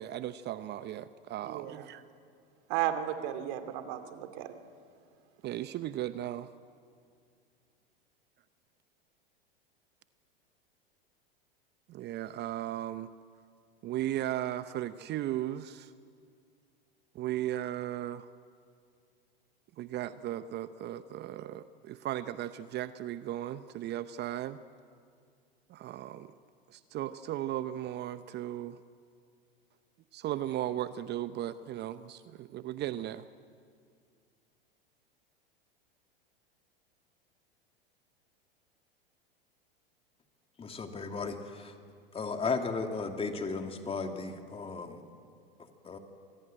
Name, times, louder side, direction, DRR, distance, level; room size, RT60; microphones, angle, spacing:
voice 1, 0.0-2.0 5.4-6.5 11.9-13.1 13.8-15.9 17.1-18.2 19.8-24.6 25.7-26.3 26.7-28.8 30.1-33.3, right 13 dB, 35° right, 13 dB, 0.8 m, -36 dB
voice 2, 1.4-1.9 2.7-4.5, right 11 dB, 55° right, 9 dB, 2.6 m, -34 dB
voice 3, 40.6-41.7 42.1-45.0 45.8-46.0, left 4 dB, 20° left, 5 dB, 2.7 m, -35 dB
27.0 x 20.0 x 9.0 m, 2.2 s
hypercardioid pair, 95°, 29 cm